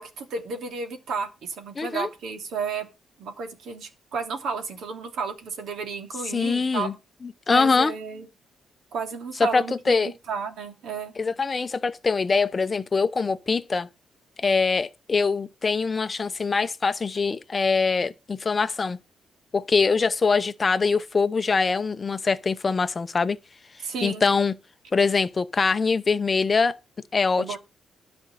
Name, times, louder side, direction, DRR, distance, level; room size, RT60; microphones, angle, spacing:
voice 1, 0.0-2.9 3.2-6.9 7.5-8.3 8.9-11.1 23.8-24.2 27.4-27.6, right 5 dB, 70° right, 2.9 m, -32 dB
voice 2, 1.8-2.1 6.3-6.9 7.5-7.9 9.5-10.1 11.2-13.9 14.4-19.0 19.5-23.4 24.0-24.5 24.9-26.7 27.1-27.6, left 4 dB, 25° left, 0.7 m, -23 dB
13.0 x 5.2 x 7.5 m
cardioid pair, 145°, 0 cm